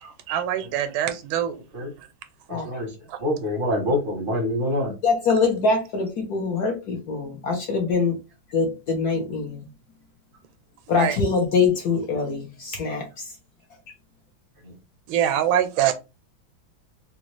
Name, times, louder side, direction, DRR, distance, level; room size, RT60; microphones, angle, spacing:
voice 1, 0.3-1.5 3.1-3.2 10.9-11.2 15.1-15.9, right 10 dB, 85° right, 1.4 m, -23 dB
voice 2, 2.5-2.9 3.2-4.9, left 1 dB, 45° right, 0.7 m, -25 dB
voice 3, 5.0-8.2 8.5-9.7 10.9-13.3, left 4 dB, 60° left, 1.1 m, -24 dB
3.9 x 2.4 x 3.1 m
omnidirectional pair, 2.2 m